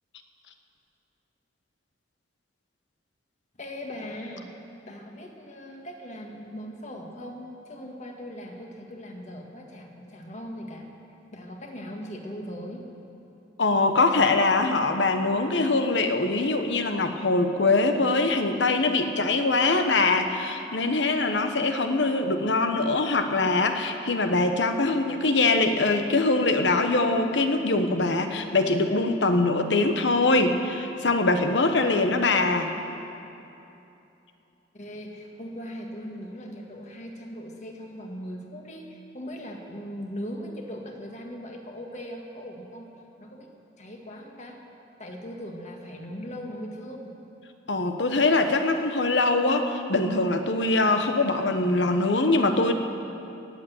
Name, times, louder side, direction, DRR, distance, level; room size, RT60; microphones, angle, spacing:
voice 1, 3.6-4.5 4.9-10.9 11.3-12.9 34.7-42.9 43.2-43.5 43.8-44.6 45.0-47.2, equal, 40° left, 1 dB, 1.7 m, -39 dB
voice 2, 13.6-32.7 47.7-52.7, left 3 dB, 80° left, 7 dB, 1.1 m, -23 dB
19.5 x 8.1 x 7.8 m, 2.9 s
head